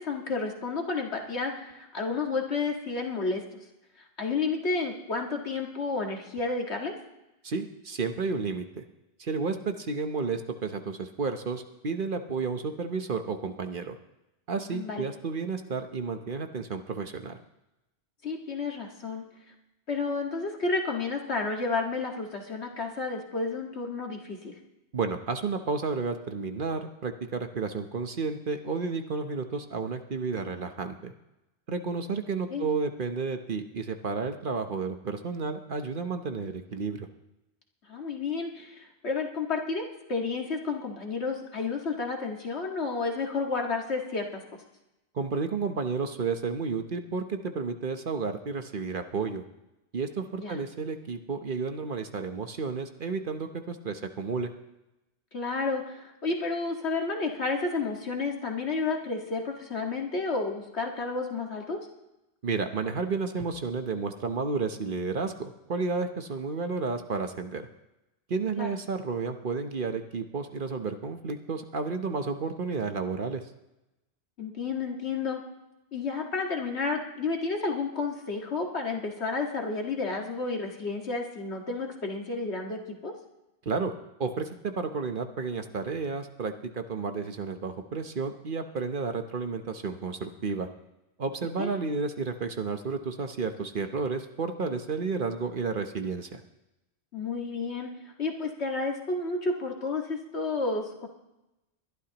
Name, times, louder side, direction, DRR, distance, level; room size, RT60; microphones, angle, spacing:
voice 1, 0.0-3.4 4.2-6.9 14.7-15.1 18.2-19.2 19.9-24.5 32.5-32.7 37.9-44.4 50.4-50.6 55.3-61.8 68.6-68.7 74.4-75.4 75.9-83.1 91.6-91.7 97.1-97.9 98.2-101.1, left 3 dB, 70° left, 1 dB, 2.1 m, -31 dB
voice 2, 7.4-8.8 9.2-14.0 14.5-17.4 24.9-31.1 31.7-37.1 45.1-49.4 49.9-54.5 62.4-67.7 68.3-73.4 83.7-83.9 84.2-90.7 91.2-96.4, right 4 dB, 50° right, 7 dB, 1.0 m, -32 dB
21.5 x 12.0 x 2.9 m, 0.95 s
omnidirectional pair, 1.1 m